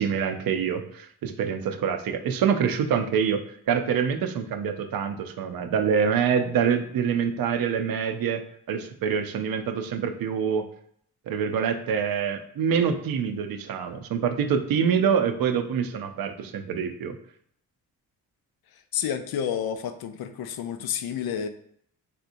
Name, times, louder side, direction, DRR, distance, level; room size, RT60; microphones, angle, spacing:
voice 1, 0.0-3.4 3.7-10.7 11.3-17.2, right 7 dB, 65° right, 0.5 m, -25 dB
voice 2, 18.9-21.5, left 8 dB, 70° left, 0.5 m, -30 dB
3.4 x 2.8 x 2.5 m
cardioid pair, 75°, 38 cm